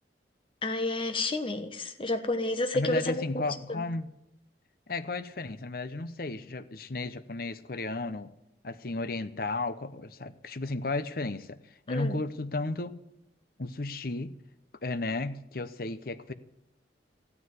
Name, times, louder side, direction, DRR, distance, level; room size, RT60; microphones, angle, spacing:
voice 1, 0.6-3.4 3.7-3.8 11.9-12.1, left 2 dB, 30° left, 8 dB, 1.3 m, -30 dB
voice 2, 2.7-4.1 4.9-8.3 8.6-13.0 13.6-14.3 14.8-16.3, left 2 dB, 55° left, 13 dB, 0.8 m, -34 dB
14.5 x 9.7 x 9.4 m, 0.86 s
head